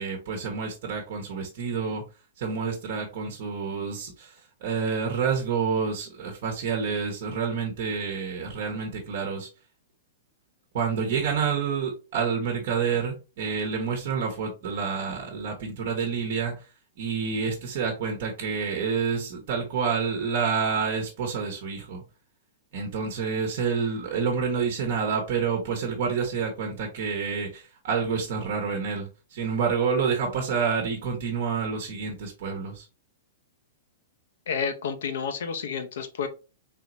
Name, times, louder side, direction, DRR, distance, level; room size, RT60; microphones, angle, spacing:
voice 1, 0.0-2.0 2.4-9.5 10.7-16.7 17.0-22.0 22.7-32.9, right 6 dB, 60° right, 2 dB, 1.0 m, -28 dB
voice 2, 34.5-36.3, left 6 dB, 70° left, 7 dB, 0.7 m, -30 dB
3.7 x 2.9 x 2.5 m, 0.31 s
hypercardioid pair, 125°, 0 cm